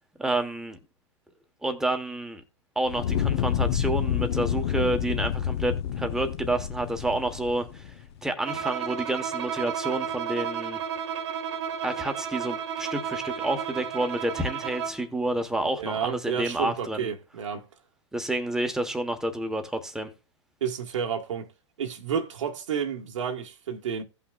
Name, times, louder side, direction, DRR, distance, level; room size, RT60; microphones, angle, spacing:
voice 1, 0.2-0.8 1.6-2.4 2.7-7.9 8.2-10.8 11.8-17.1 18.1-20.1, right 1 dB, 5° right, 1.2 m, -29 dB
Fire, 2.9-8.0, left 9 dB, 60° left, 1.0 m, -28 dB
Bowed string instrument, 8.4-15.1, right 8 dB, 65° right, 1.4 m, -32 dB
voice 2, 15.8-17.6 20.6-21.5 21.8-24.0, right 7 dB, 90° right, 1.5 m, -31 dB
16.5 x 5.7 x 2.4 m
hypercardioid pair, 140°, 16 cm